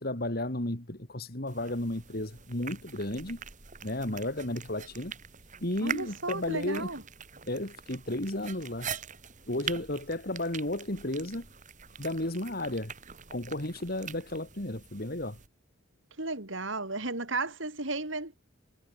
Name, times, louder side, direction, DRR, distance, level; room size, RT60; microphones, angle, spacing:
voice 1, 0.0-3.4 3.8-5.1 5.6-6.9 7.5-8.9 9.5-11.5 12.0-12.9 13.3-15.4, left 1 dB, 45° left, 2.8 m, -33 dB
sound 1, 1.5-15.5, right 7 dB, 35° right, 2.8 m, -44 dB
voice 2, 5.8-7.0 16.2-18.4, right 3 dB, 65° right, 4.6 m, -34 dB
head